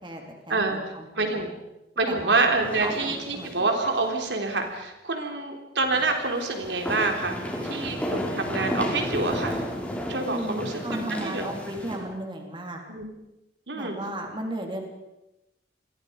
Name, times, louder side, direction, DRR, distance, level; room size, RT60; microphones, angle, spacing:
voice 1, 0.0-1.5 2.1-2.4 2.8-3.5 10.3-12.8 13.7-14.8, right 1 dB, 25° right, 2 dB, 3.9 m, -35 dB
voice 2, 1.2-1.5 2.0-7.4 7.6-9.6 10.1-10.7 11.1-11.4 12.9-13.1 13.7-14.0, right 3 dB, 80° right, 3 dB, 3.7 m, -27 dB
sound 1, 2.6-4.1 4.4-4.5 5.9-12.0, equal, 10° left, 4.8 m, -33 dB
29.0 x 22.5 x 5.3 m, 0.93 s
head